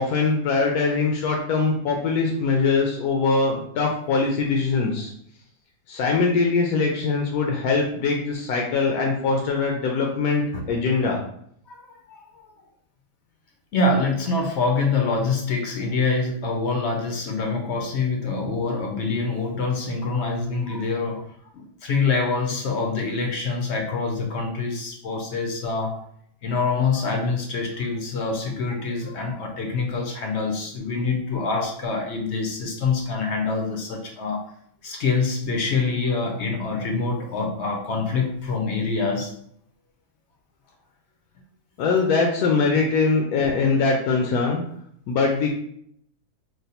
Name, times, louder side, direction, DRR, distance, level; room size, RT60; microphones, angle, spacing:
voice 1, 0.0-5.1 5.9-11.2 41.8-44.6 45.1-45.5, left 4 dB, 80° left, 0 dB, 1.1 m, -22 dB
voice 2, 11.7-12.5 13.7-21.3 21.5-26.0 26.4-34.5 34.8-39.3, left 4 dB, 60° left, 1 dB, 0.7 m, -25 dB
3.2 x 2.2 x 4.1 m, 0.67 s
omnidirectional pair, 1.6 m